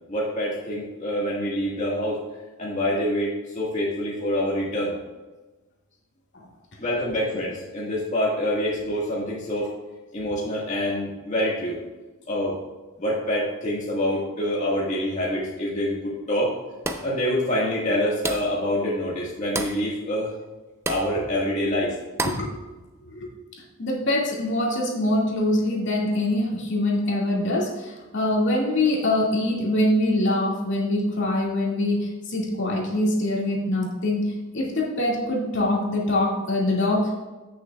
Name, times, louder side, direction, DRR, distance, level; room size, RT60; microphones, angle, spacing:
voice 1, 0.1-2.2 2.6-5.0 6.8-9.7 10.1-11.8 12.3-12.6 13.0-16.5 17.0-20.3 20.9-21.9, equal, 35° left, -5 dB, 1.7 m, -26 dB
sound 1, 16.8-17.2 18.2-18.6 19.5-19.8 20.9-21.1 22.2-22.5, right 2 dB, 15° right, 0.5 m, -29 dB
voice 2, 22.2-22.6 23.1-23.3 23.8-37.3, left 1 dB, 60° left, -3 dB, 2.2 m, -24 dB
16.0 x 6.5 x 2.4 m, 1.2 s
head